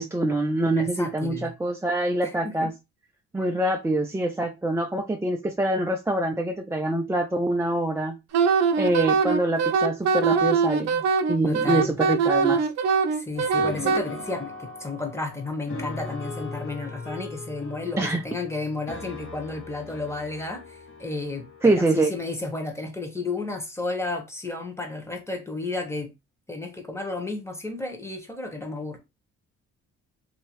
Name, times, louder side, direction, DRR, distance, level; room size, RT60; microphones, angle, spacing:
voice 1, 0.0-2.7 3.3-8.2 8.8-12.6 18.0-18.2 21.6-22.1, right 1 dB, 10° right, 0.4 m, -25 dB
voice 2, 0.8-1.5 2.2-2.7 11.4-12.0 13.1-26.1 26.5-29.0, left 3 dB, 10° left, 1.1 m, -32 dB
Wind instrument woodwind instrument, 8.3-14.0, right 5 dB, 60° right, 0.6 m, -22 dB
sound 1, 13.3-21.9, left 3 dB, 45° left, 1.2 m, -39 dB
3.0 x 2.8 x 3.0 m
cardioid pair, 90°, 30 cm